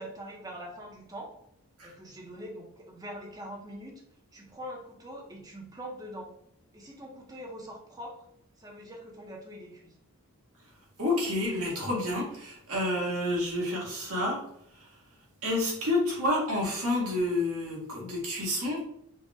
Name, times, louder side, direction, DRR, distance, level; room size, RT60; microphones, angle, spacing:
voice 1, 0.0-1.3 1.8-4.0 4.3-6.3 6.7-8.3 8.6-10.0, equal, 15° right, 0 dB, 0.8 m, -43 dB
voice 2, 11.0-14.4 15.4-18.8, left 1 dB, 75° right, -3 dB, 1.6 m, -29 dB
5.1 x 2.3 x 3.5 m, 0.73 s
head